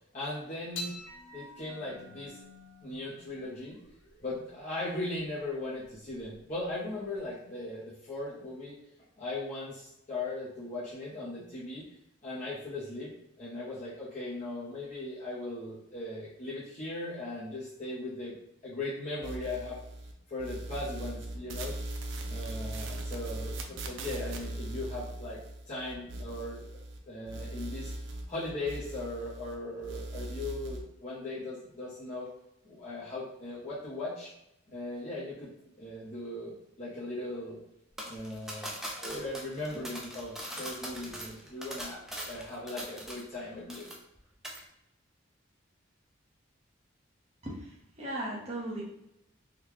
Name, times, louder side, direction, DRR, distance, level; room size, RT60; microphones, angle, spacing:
voice 1, 0.1-1.0 1.3-2.4 2.8-3.8 4.2-8.8 9.2-11.9 12.2-19.8 20.3-21.8 22.2-25.4 25.7-27.9 28.3-32.3 32.7-34.3 34.7-35.5 35.8-37.6 38.0-38.7 39.1-43.9, left 2 dB, 35° left, -9 dB, 0.7 m, -38 dB
sound 1, 0.8-7.3, left 2 dB, 75° left, 0.7 m, -48 dB
sound 2, 19.2-20.1 20.4-27.0 27.3-29.6 29.8-30.8, right 1 dB, 70° right, 0.4 m, -39 dB
sound 3, 38.0-43.4 43.7-44.2 44.4-44.6, equal, ahead, 0.4 m, -41 dB
voice 2, 47.4-48.8, right 1 dB, 30° right, -4 dB, 0.9 m, -38 dB
3.6 x 2.3 x 3.0 m, 0.80 s
head